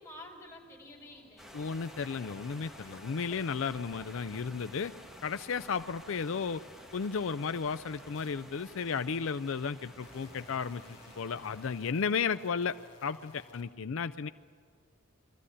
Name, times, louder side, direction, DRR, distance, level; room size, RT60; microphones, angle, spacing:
voice 1, 0.0-1.9 6.3-6.5, left 1 dB, 15° left, -3 dB, 5.4 m, -51 dB
sound 1, 1.0-5.1 5.5-7.5 7.8-8.7 9.3-13.6, left 2 dB, 30° left, 4.1 m, -59 dB
sound 2, 1.4-11.9, equal, ahead, 1.9 m, -52 dB
voice 2, 1.5-4.9 5.2-6.6 6.9-10.8 11.2-14.3, left 5 dB, 65° left, 12 dB, 0.5 m, -34 dB
sound 3, 2.0-11.7, right 1 dB, 20° right, 2.0 m, -58 dB
23.5 x 15.0 x 9.9 m, 2.2 s
head